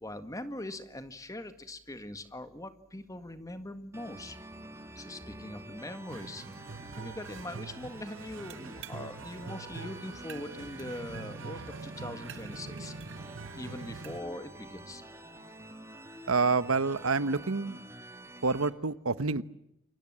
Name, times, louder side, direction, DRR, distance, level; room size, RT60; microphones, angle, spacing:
voice 1, 0.0-4.4 5.0-6.4 7.0-12.9 13.5-15.0 19.2-19.4, left 1 dB, 15° left, 10 dB, 1.8 m, -42 dB
sound 1, 3.9-18.7, right 1 dB, 15° right, 2.8 m, -48 dB
sound 2, 6.1-14.2, right 4 dB, 60° right, 1.0 m, -44 dB
voice 2, 16.3-17.8 18.4-19.4, right 4 dB, 90° right, 15 dB, 1.1 m, -28 dB
29.0 x 24.0 x 7.5 m, 0.81 s
head